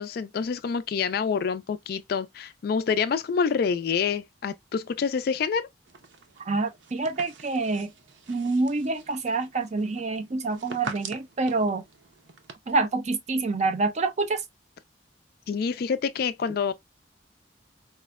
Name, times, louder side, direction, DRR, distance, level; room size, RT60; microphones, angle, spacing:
voice 1, 0.0-5.7 15.5-16.7, left 6 dB, 55° left, 0.3 m, -27 dB
sound 1, 5.8-12.5, right 4 dB, 80° right, 0.6 m, -44 dB
voice 2, 6.4-7.9 8.3-11.8 12.7-14.4, right 3 dB, 40° right, 0.5 m, -27 dB
4.2 x 2.1 x 2.2 m
head